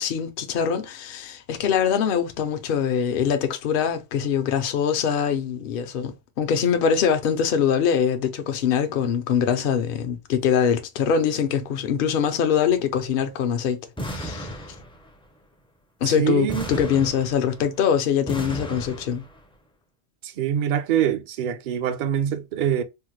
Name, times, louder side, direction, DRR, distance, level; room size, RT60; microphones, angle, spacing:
voice 1, 0.0-14.5 16.0-19.2, left 7 dB, 60° left, 0.7 m, -23 dB
sound 1, 14.0-15.2 16.5-17.8 18.3-19.4, equal, 10° left, 0.3 m, -34 dB
voice 2, 16.0-16.6 20.2-22.8, right 9 dB, 60° right, 0.6 m, -24 dB
3.5 x 2.1 x 3.0 m
omnidirectional pair, 1.2 m